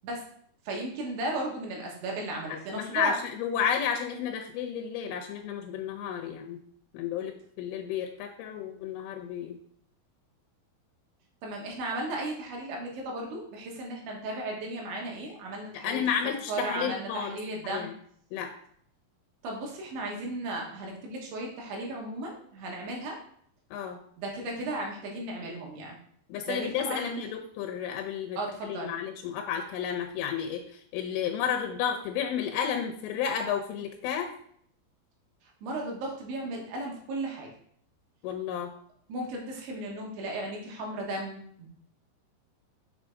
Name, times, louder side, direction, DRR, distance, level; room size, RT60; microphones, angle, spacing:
voice 1, 0.7-3.2 11.4-16.0 16.5-17.9 19.4-23.2 24.2-26.0 26.5-27.3 28.4-28.9 35.6-37.5 39.1-41.7, right 2 dB, 75° right, -1 dB, 3.7 m, -35 dB
voice 2, 2.7-6.6 6.9-9.6 15.8-17.4 17.6-17.9 18.3-18.5 23.7-24.0 26.3-34.3 38.2-38.7, left 8 dB, 90° left, 3 dB, 3.3 m, -32 dB
7.3 x 6.2 x 3.7 m, 0.64 s
omnidirectional pair, 5.5 m